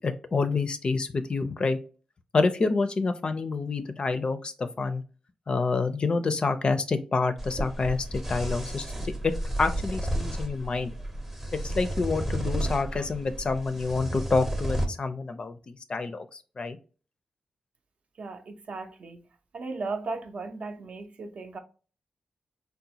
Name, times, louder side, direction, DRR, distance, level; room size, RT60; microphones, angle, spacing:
voice 1, 0.0-1.8 2.3-5.0 5.5-10.9 11.5-16.3 16.6-16.8, left 4 dB, 40° left, 0.4 m, -28 dB
sound 1, 7.4-14.9, right 1 dB, 10° right, 0.6 m, -32 dB
voice 2, 18.2-19.2 19.5-21.6, right 3 dB, 60° right, 0.6 m, -36 dB
3.9 x 2.1 x 2.7 m
wide cardioid pair, 140°, 2 cm